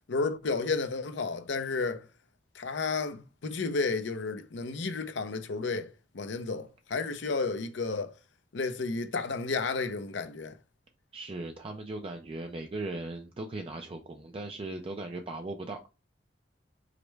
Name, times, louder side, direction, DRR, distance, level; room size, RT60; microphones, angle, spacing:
voice 1, 0.1-2.0 2.6-8.1 8.5-10.5, left 4 dB, 80° left, 0.6 m, -32 dB
voice 2, 11.1-15.8, right 2 dB, 30° right, 0.4 m, -38 dB
5.0 x 2.1 x 4.5 m
head